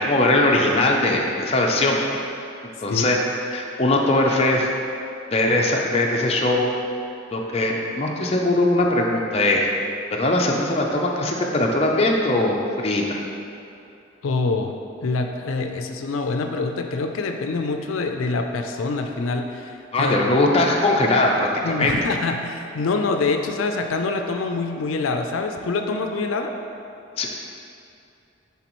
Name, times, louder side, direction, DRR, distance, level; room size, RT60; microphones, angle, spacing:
voice 1, 0.0-2.2 2.8-3.2 3.5-4.7 5.3-6.7 7.3-9.7 10.1-13.2 19.9-22.0 27.2-27.3, left 2 dB, 30° left, -1 dB, 0.5 m, -20 dB
voice 2, 14.2-14.7 15.0-20.4 21.6-26.6, left 3 dB, 85° left, 5 dB, 0.4 m, -25 dB
10.0 x 3.5 x 3.0 m, 2.7 s
head